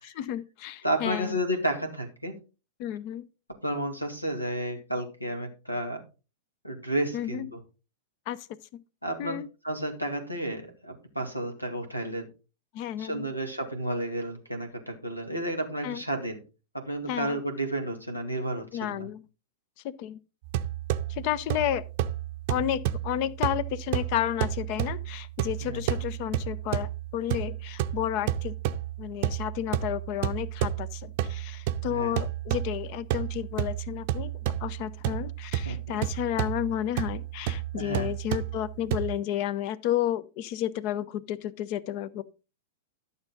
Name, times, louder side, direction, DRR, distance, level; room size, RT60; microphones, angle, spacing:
voice 1, 0.0-1.4 2.8-3.3 7.1-7.5 8.3-8.5 8.7-8.8 9.2-9.5 12.7-13.3 15.8-16.0 17.1-17.4 18.7-19.3 19.8-20.2 21.1-21.8 22.5-28.6 29.0-34.3 34.6-42.2, left 11 dB, 40° left, 0.6 m, -32 dB
voice 2, 0.8-2.3 3.6-6.0 6.6-7.6 9.0-12.3 13.0-16.4 16.9-19.1 25.6-25.8 31.9-32.1 35.7-36.0 37.7-38.1, right 1 dB, 90° left, 2.1 m, -32 dB
sound 1, 20.4-39.2, right 12 dB, 45° right, 0.6 m, -31 dB
12.0 x 6.6 x 3.9 m
figure-of-eight pair, 100°, 0 cm